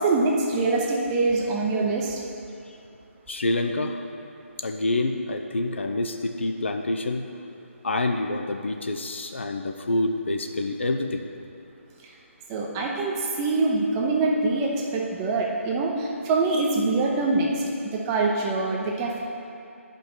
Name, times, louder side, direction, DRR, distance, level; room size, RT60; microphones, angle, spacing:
voice 1, 0.0-2.2 12.5-17.6 17.9-19.2, right 3 dB, 15° right, -1 dB, 0.7 m, -24 dB
voice 2, 3.3-4.0 4.6-7.2 7.8-11.3, left 2 dB, 55° left, 5 dB, 0.6 m, -27 dB
10.5 x 5.3 x 4.5 m, 2.6 s
figure-of-eight pair, 150°, 7 cm